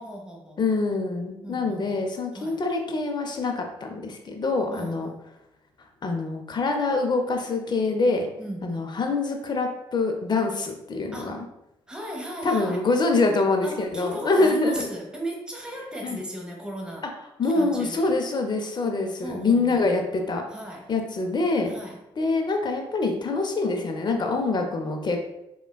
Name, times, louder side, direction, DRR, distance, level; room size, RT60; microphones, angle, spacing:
voice 1, 0.0-1.0 1.4-2.0 2.3-2.6 4.7-5.2 8.4-8.9 11.1-11.4 11.9-12.9 13.6-17.1 17.4-18.1 19.2-20.0 20.5-20.9 21.6-22.0, right 1 dB, 5° right, 0 dB, 0.8 m, -37 dB
voice 2, 0.6-5.1 6.0-8.3 8.6-11.4 12.4-14.9 16.0-16.2 17.4-20.4 20.9-21.7 22.2-25.3, left 3 dB, 35° left, 4 dB, 0.6 m, -25 dB
3.3 x 2.3 x 2.2 m, 0.86 s
hypercardioid pair, 55°, 12 cm